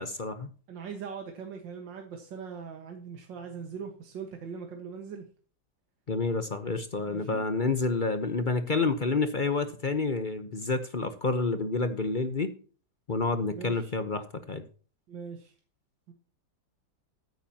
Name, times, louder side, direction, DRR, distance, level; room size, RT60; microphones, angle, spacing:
voice 1, 0.0-0.5 6.1-12.5 13.1-14.6, left 3 dB, 35° left, 9 dB, 0.8 m, -29 dB
voice 2, 0.7-5.3 7.1-7.4 13.6-13.9 15.1-15.5, right 6 dB, 85° right, 3 dB, 2.2 m, -41 dB
14.0 x 9.4 x 2.9 m, 0.38 s
omnidirectional pair, 1.9 m